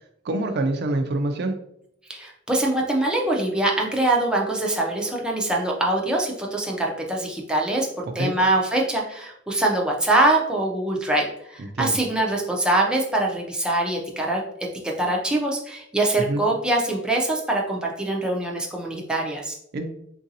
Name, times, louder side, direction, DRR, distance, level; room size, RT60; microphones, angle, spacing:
voice 1, 0.2-1.6 8.2-8.3 11.6-11.9 16.3-16.4 19.7-19.9, right 2 dB, 55° right, 5 dB, 0.4 m, -25 dB
voice 2, 2.1-14.4 14.8-19.6, right 2 dB, 5° right, -2 dB, 0.5 m, -23 dB
3.8 x 2.5 x 2.7 m, 0.72 s
head